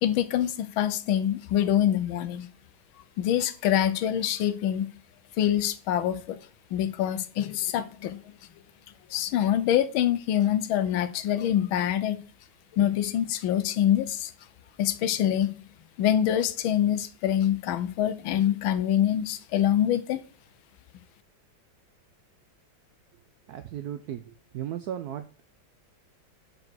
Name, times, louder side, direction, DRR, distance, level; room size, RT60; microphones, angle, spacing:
voice 1, 0.0-2.5 3.2-4.9 5.4-6.4 6.7-8.2 9.1-12.2 12.7-14.3 14.8-15.5 16.0-20.2, left 11 dB, 90° left, 1.5 m, -25 dB
voice 2, 23.5-25.2, right 10 dB, 90° right, 0.8 m, -36 dB
5.0 x 4.9 x 6.1 m
omnidirectional pair, 2.2 m